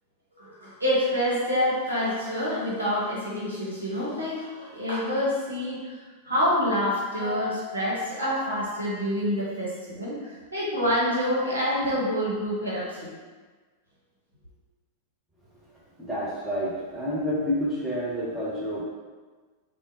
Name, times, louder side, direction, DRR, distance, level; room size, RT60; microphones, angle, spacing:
voice 1, 0.4-5.9 6.2-13.1, equal, 80° right, -7 dB, 0.9 m, -27 dB
voice 2, 16.0-18.8, equal, 5° right, -8 dB, 1.0 m, -29 dB
3.7 x 2.1 x 2.6 m, 1.4 s
figure-of-eight pair, 90°, 0 cm